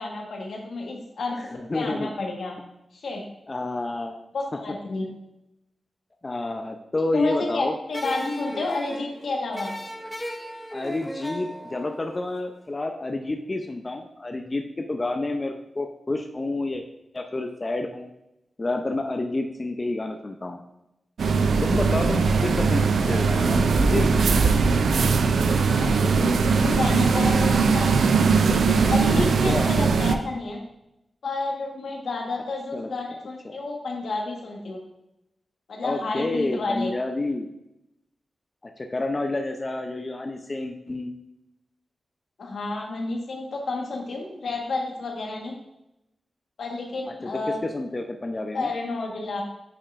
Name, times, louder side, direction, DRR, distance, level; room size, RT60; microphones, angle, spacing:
voice 1, 0.0-2.5 2.9-3.2 4.3-5.1 7.1-9.7 22.8-23.2 25.7-27.9 28.4-30.6 31.2-34.8 35.7-36.9 42.4-45.5 46.6-47.6 48.5-49.4, left 3 dB, 85° left, 0 dB, 1.4 m, -30 dB
voice 2, 1.5-2.1 3.5-4.2 6.2-7.7 10.7-16.8 17.1-18.1 18.6-20.6 21.6-24.3 29.5-29.7 32.7-32.9 33.4-33.6 35.8-37.5 38.8-41.1 47.2-47.3 47.7-48.7, left 2 dB, 35° left, 4 dB, 0.6 m, -29 dB
sound 1, 7.9-13.0, equal, ahead, 0.9 m, -37 dB
sound 2, 21.2-30.2, right 5 dB, 90° right, 0.4 m, -20 dB
8.7 x 5.1 x 2.5 m, 0.86 s
cardioid pair, 55°, 0 cm